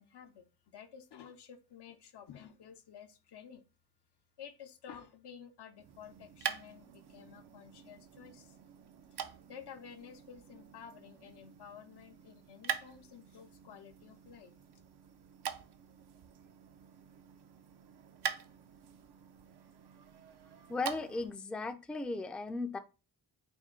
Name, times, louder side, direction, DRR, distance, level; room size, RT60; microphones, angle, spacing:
voice 1, 0.0-3.6 4.4-8.6 9.2-14.5, left 8 dB, 75° left, 7 dB, 0.6 m, -52 dB
sound 1, 5.7-21.4, right 8 dB, 70° right, 0.6 m, -45 dB
voice 2, 20.7-22.8, left 3 dB, 5° left, 8 dB, 0.3 m, -36 dB
4.5 x 2.2 x 3.6 m, 0.32 s
cardioid pair, 50°, 41 cm